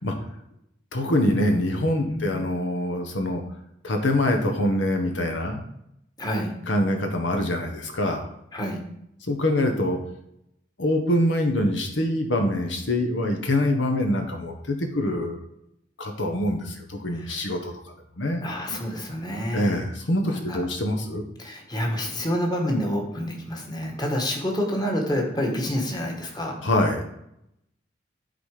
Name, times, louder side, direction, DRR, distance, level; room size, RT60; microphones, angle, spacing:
voice 1, 0.9-3.4 3.8-5.6 6.7-8.3 9.3-10.0 10.8-15.4 16.0-17.7 18.2-18.4 19.5-21.2 26.6-27.0, left 1 dB, 80° left, 4 dB, 1.2 m, -24 dB
voice 2, 2.1-2.4 6.2-6.5 8.5-8.8 17.1-17.4 18.4-19.8 20.3-20.6 21.4-26.5, equal, 20° left, 0 dB, 1.6 m, -28 dB
12.0 x 4.1 x 5.0 m, 0.77 s
head